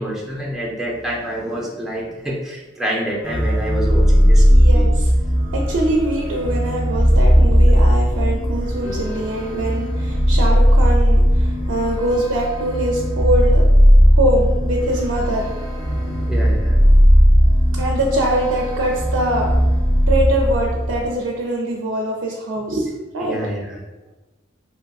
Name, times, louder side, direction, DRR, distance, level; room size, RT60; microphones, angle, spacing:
voice 1, 0.0-4.9 8.8-9.3 16.2-16.8 23.2-23.8, equal, ahead, -3 dB, 0.4 m, -27 dB
sound 1, 3.2-21.1, equal, 15° left, 1.2 m, -16 dB
voice 2, 4.5-5.1 5.5-13.7 14.2-15.5 15.9-16.1 17.7-19.6 20.1-23.4, right 1 dB, 85° right, -2 dB, 0.4 m, -23 dB
2.6 x 2.5 x 2.3 m, 1.1 s
head